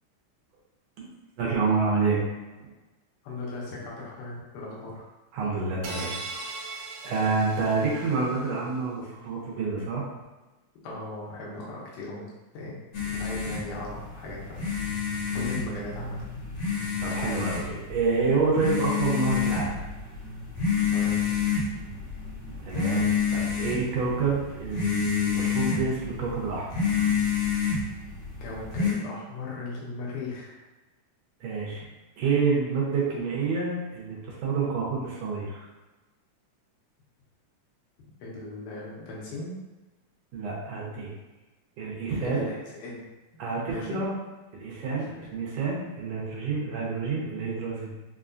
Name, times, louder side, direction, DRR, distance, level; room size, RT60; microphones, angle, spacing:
voice 1, 1.4-2.2 2.6-2.7 5.3-6.1 7.0-10.0 17.0-19.8 22.6-26.9 31.4-31.8 32.2-35.6 40.3-41.1 41.8-42.5 43.4-44.1 44.5-47.9, right 4 dB, 70° right, -4 dB, 1.7 m, -28 dB
voice 2, 3.2-5.1 10.8-12.3 12.5-12.9 13.1-14.8 15.3-16.2 20.9-21.4 28.4-30.6 38.2-39.5 42.2-43.1 43.7-44.0 44.9-45.1, left 2 dB, 85° left, -5 dB, 2.5 m, -37 dB
sound 1, 5.8-8.3, right 3 dB, 90° right, 1.5 m, -39 dB
sound 2, 12.9-28.9, left 6 dB, 65° left, 1.5 m, -29 dB
5.4 x 2.3 x 2.5 m, 1.1 s
omnidirectional pair, 3.6 m